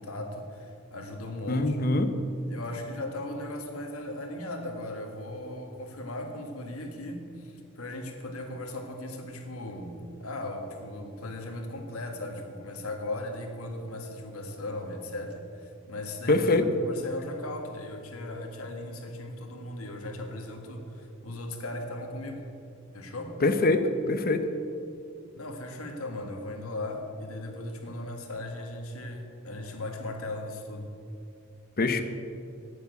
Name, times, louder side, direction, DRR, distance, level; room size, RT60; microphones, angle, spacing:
voice 1, 0.0-1.9 2.5-22.5 22.9-23.4 25.3-30.9, left 1 dB, 85° left, 3 dB, 1.6 m, -37 dB
voice 2, 1.5-2.1 16.3-16.6 23.4-23.8 24.1-24.4 31.8-32.0, left 2 dB, 45° left, 9 dB, 0.8 m, -23 dB
8.8 x 8.5 x 8.2 m, 2.5 s
head